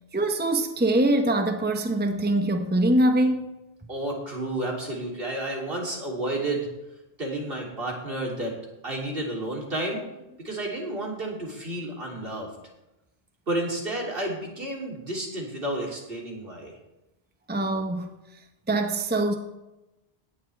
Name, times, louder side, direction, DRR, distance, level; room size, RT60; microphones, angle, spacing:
voice 1, 0.1-3.5 17.5-18.1 18.7-19.4, right 1 dB, 10° right, 5 dB, 0.9 m, -23 dB
voice 2, 3.9-6.7 7.2-8.5 8.8-10.0 10.4-12.5 13.5-16.7, right 1 dB, 65° right, -2 dB, 3.4 m, -31 dB
17.0 x 11.5 x 3.4 m, 0.96 s
omnidirectional pair, 1.0 m